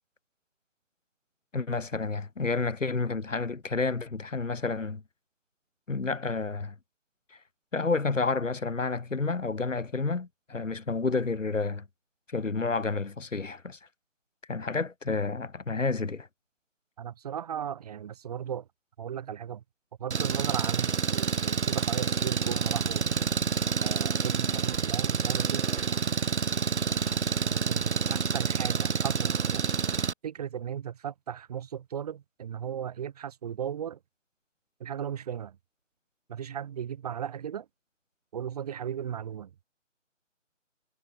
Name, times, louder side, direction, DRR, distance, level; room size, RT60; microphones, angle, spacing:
voice 1, 1.5-5.0 5.9-6.8 7.3-7.4 7.7-11.9 12.3-13.8 14.5-16.3, left 4 dB, 75° left, 2.5 m, -30 dB
voice 2, 17.0-18.7 19.0-19.6 20.0-23.1 23.8-25.7 27.5-29.8 30.2-34.0 34.8-35.6 36.3-37.6 38.3-39.5, right 9 dB, 30° right, 3.6 m, -36 dB
Engine, 20.1-30.1, right 6 dB, 60° right, 1.0 m, -28 dB
figure-of-eight pair, 155°, 38 cm